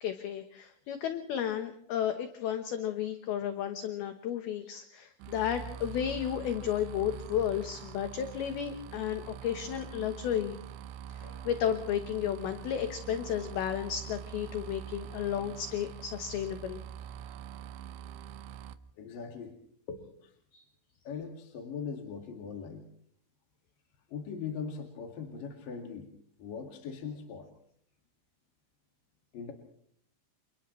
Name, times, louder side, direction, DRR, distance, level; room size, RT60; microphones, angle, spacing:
voice 1, 0.0-10.6 11.2-16.8 20.5-20.6, left 9 dB, 70° left, 7 dB, 2.5 m, -33 dB
sound 1, 5.2-18.7, right 9 dB, 75° right, 2.9 m, -44 dB
voice 2, 19.0-19.6 19.9-20.3 21.0-22.8 24.1-26.1 26.4-27.5 29.3-29.5, left 6 dB, 55° left, 2 dB, 3.3 m, -40 dB
29.0 x 29.0 x 3.2 m, 0.65 s
omnidirectional pair, 5.6 m